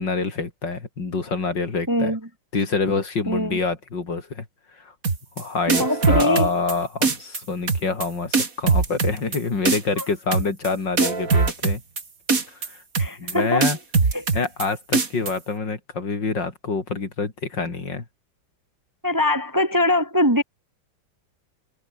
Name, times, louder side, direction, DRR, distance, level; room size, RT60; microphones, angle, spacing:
voice 1, 0.0-2.1 2.5-4.5 4.7-4.9 5.4-11.8 12.5-12.8 13.2-13.8 14.3-18.0, left 4 dB, 65° left, 4.2 m, -26 dB
voice 2, 1.9-2.2 3.3-3.6 5.7-6.5 10.0-10.1 13.0-13.8 14.1-14.3 19.0-20.4, left 1 dB, 10° right, 1.8 m, -22 dB
sound 1, 5.0-5.4 5.7-6.7 7.0-7.4 7.7-8.1 8.3-9.4 9.6-10.0 10.3-10.7 11.0-12.0 12.3-12.7 12.9-13.3 13.6-14.6 14.9-15.3, right 4 dB, 45° right, 2.9 m, -21 dB
omnidirectional pair, 2.1 m